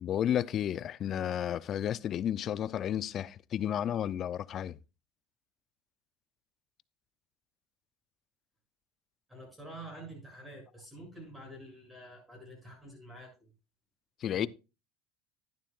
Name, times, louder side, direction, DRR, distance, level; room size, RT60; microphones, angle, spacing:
voice 1, 0.0-4.8 14.2-14.5, left 10 dB, 40° left, 0.5 m, -32 dB
voice 2, 9.3-13.5 14.3-14.5, right 1 dB, 10° right, 7.3 m, -48 dB
12.0 x 11.0 x 2.4 m
supercardioid pair, 135°, 0 cm